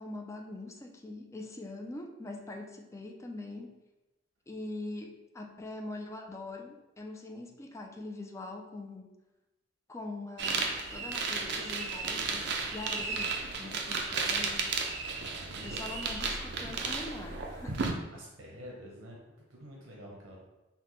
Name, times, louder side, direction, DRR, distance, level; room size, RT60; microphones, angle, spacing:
voice 1, 0.0-3.8 4.5-9.1 9.9-14.7 15.6-17.7, left 2 dB, 15° left, 2 dB, 0.3 m, -43 dB
sound 1, 10.4-17.9, right 4 dB, 60° right, 0.4 m, -34 dB
voice 2, 15.0-16.0 17.7-20.4, equal, 85° right, -2 dB, 0.8 m, -46 dB
5.8 x 2.1 x 3.1 m, 1.0 s
head